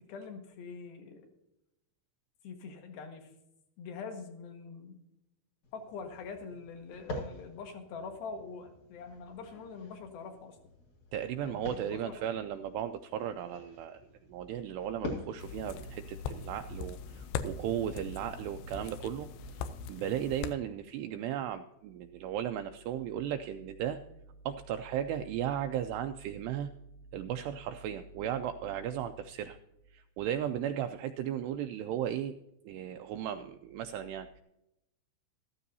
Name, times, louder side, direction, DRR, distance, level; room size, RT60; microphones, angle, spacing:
voice 1, 0.1-1.3 2.4-3.3 3.8-5.0 5.7-10.6 11.4-12.2, left 5 dB, 65° left, 4 dB, 3.0 m, -44 dB
sound 1, 5.6-18.0, left 2 dB, 50° left, 2.7 m, -47 dB
voice 2, 11.1-19.3 19.5-24.0 24.5-26.7 27.1-29.6 29.9-32.4 32.7-34.4, right 10 dB, 85° right, 7 dB, 2.4 m, -36 dB
sound 2, 15.4-20.5, left 7 dB, 80° left, 2.4 m, -41 dB
14.5 x 14.0 x 2.7 m, 0.84 s
omnidirectional pair, 5.3 m